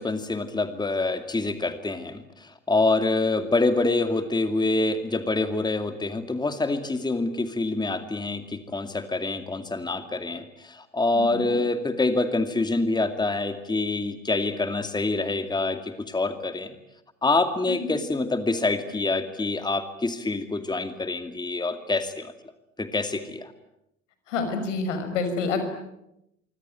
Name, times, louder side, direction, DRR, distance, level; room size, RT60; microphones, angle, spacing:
voice 1, 0.0-16.7 17.2-22.3 22.8-23.5, left 2 dB, 10° left, 8 dB, 2.4 m, -26 dB
voice 2, 11.1-11.5 17.7-17.9 24.3-25.6, left 4 dB, 75° left, 9 dB, 5.9 m, -28 dB
26.0 x 25.0 x 9.1 m, 0.85 s
figure-of-eight pair, 70°, 37 cm